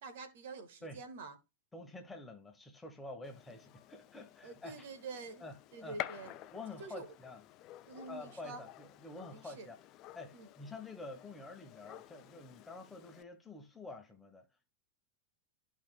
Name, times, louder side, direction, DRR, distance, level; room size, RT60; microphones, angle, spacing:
voice 1, 0.0-1.3 4.4-5.4 5.7-6.5 6.8-7.1 7.8-8.6 9.3-9.7 10.3-10.5, right 4 dB, 55° right, 1.4 m, -47 dB
voice 2, 1.7-4.9 5.4-6.0 6.5-7.4 8.1-9.8 10.1-14.7, left 2 dB, 10° left, 1.4 m, -48 dB
Gunshot gunfire, 3.2-13.2, left 14 dB, 35° left, 0.5 m, -50 dB
13.5 x 4.7 x 2.2 m
figure-of-eight pair, 90°, 0 cm